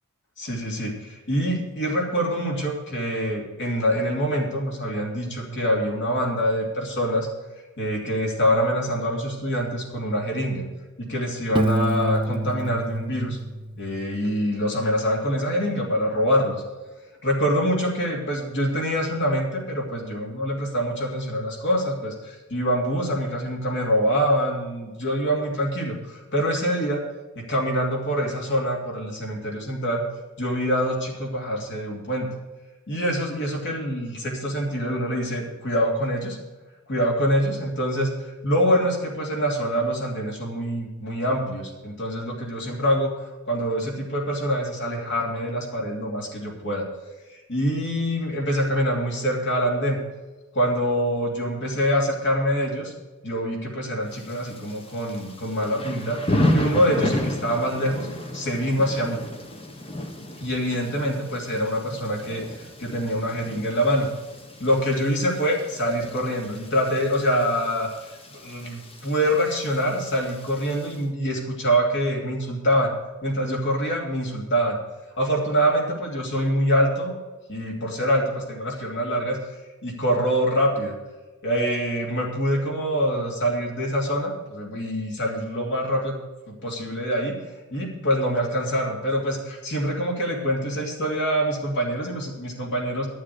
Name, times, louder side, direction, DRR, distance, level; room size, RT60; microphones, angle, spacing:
voice 1, 0.4-7.3 7.8-10.6 11.0-13.4 13.8-16.6 17.2-27.0 27.4-30.0 30.4-32.3 32.9-36.4 36.9-46.8 47.3-50.0 50.5-52.9 53.2-58.1 58.3-59.2 60.4-64.1 64.6-72.9 73.2-74.8 75.2-77.1 77.5-79.4 79.8-80.9 81.4-86.1 86.5-87.3 87.7-93.1, equal, 55° left, 0 dB, 2.9 m, -25 dB
Piano, 11.6-14.3, right 1 dB, 25° right, 0.4 m, -27 dB
Thunder / Rain, 54.1-71.0, left 1 dB, 25° left, 1.3 m, -32 dB
11.5 x 7.7 x 6.5 m, 1.2 s
head